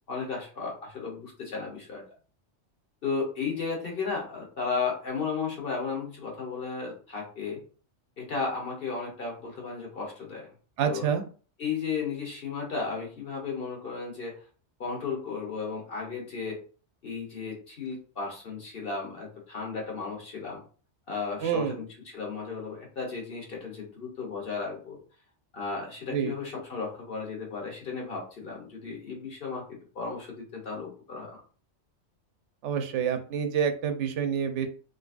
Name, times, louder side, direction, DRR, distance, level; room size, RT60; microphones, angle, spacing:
voice 1, 0.1-2.0 3.0-7.6 8.2-10.5 10.8-11.1 11.6-14.4 14.8-16.6 17.0-20.6 21.1-25.0 25.5-31.4, left 5 dB, 55° left, -1 dB, 1.2 m, -34 dB
voice 2, 10.8-11.2 21.4-21.7 26.1-26.3 32.6-34.7, right 8 dB, 80° right, 7 dB, 0.9 m, -27 dB
3.8 x 2.5 x 2.4 m, 0.39 s
omnidirectional pair, 1.2 m